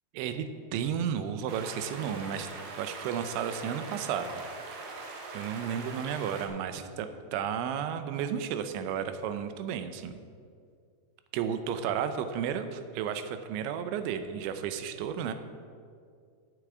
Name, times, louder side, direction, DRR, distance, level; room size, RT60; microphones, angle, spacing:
voice 1, 0.1-0.5 0.7-2.5 2.8-4.4 5.3-10.2 11.3-15.3, right 8 dB, 90° right, 9 dB, 3.1 m, -33 dB
sound 1, 1.5-6.5, right 3 dB, 70° right, 3.1 m, -42 dB
8.6 x 8.3 x 8.0 m, 2.2 s
omnidirectional pair, 5.2 m